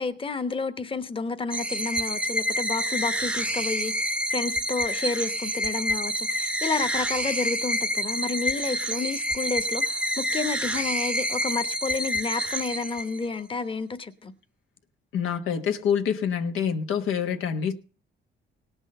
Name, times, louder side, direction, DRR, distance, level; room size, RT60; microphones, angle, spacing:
voice 1, 0.0-3.9 4.3-14.3, left 4 dB, 25° left, 1.0 m, -30 dB
sound 1, 1.5-13.4, equal, 5° right, 0.7 m, -28 dB
voice 2, 15.1-17.7, left 7 dB, 90° left, 1.3 m, -26 dB
18.0 x 6.3 x 6.6 m
cardioid pair, 95°, 20 cm